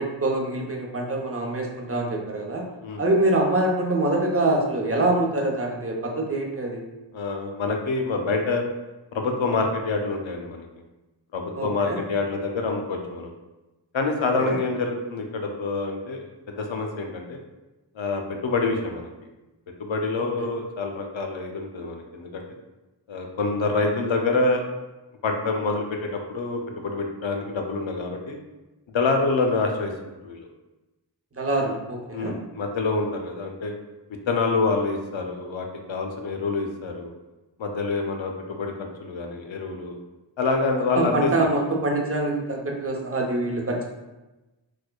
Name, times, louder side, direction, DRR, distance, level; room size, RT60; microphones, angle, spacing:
voice 1, 0.0-2.6 3.0-6.8 11.6-12.0 14.3-14.6 20.1-20.5 31.4-32.3 41.0-43.9, right 2 dB, 30° right, -1 dB, 0.7 m, -25 dB
voice 2, 7.1-8.6 9.1-10.7 11.3-13.3 13.9-17.4 18.0-19.1 19.8-22.4 23.1-24.6 25.2-28.4 28.9-29.9 30.2-30.5 32.1-33.7 34.3-37.1 37.6-39.9 40.4-41.3, left 3 dB, 85° left, 3 dB, 0.6 m, -26 dB
4.6 x 2.1 x 2.3 m, 1.1 s
wide cardioid pair, 45°, 45 cm